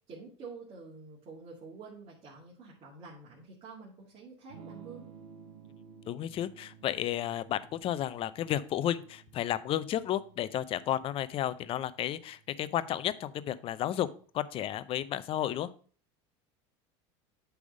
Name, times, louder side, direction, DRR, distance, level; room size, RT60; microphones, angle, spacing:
voice 1, 0.1-5.0, right 4 dB, 45° right, -5 dB, 2.2 m, -48 dB
Electric guitar / Strum, 4.5-14.3, right 7 dB, 90° right, 1.1 m, -55 dB
voice 2, 6.1-14.1 14.3-15.7, left 11 dB, 40° left, 15 dB, 0.5 m, -32 dB
8.5 x 3.5 x 5.2 m, 0.43 s
supercardioid pair, 120°, 14 cm